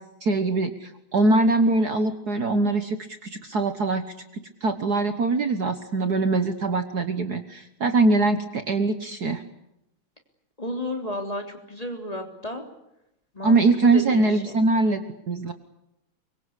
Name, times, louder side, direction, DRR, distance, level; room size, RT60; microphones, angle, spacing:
voice 1, 0.2-4.0 4.6-9.4 13.4-15.5, right 3 dB, 50° right, 9 dB, 1.7 m, -22 dB
voice 2, 10.6-12.6 13.3-13.6 13.9-14.6, equal, 15° left, 3 dB, 3.6 m, -32 dB
24.5 x 23.0 x 8.3 m, 0.85 s
omnidirectional pair, 2.3 m